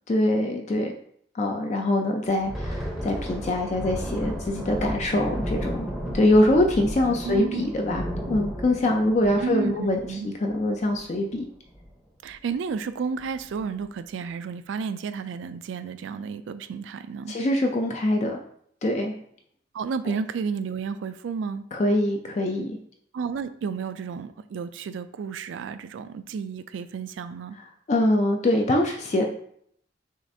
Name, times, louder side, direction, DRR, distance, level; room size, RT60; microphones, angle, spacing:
voice 1, 0.1-0.9 1.4-5.9 6.1-11.4 17.3-18.4 18.8-19.1 21.7-22.8 27.9-29.2, left 1 dB, 35° left, 3 dB, 0.4 m, -23 dB
Thunder, 2.3-11.3 11.7-11.9 12.3-12.5 13.2-13.6, equal, ahead, 0.7 m, -34 dB
voice 2, 7.2-7.7 9.4-10.3 12.2-17.3 19.7-21.6 23.1-27.6, right 5 dB, 75° right, 13 dB, 0.3 m, -32 dB
6.3 x 2.5 x 2.6 m, 0.66 s
head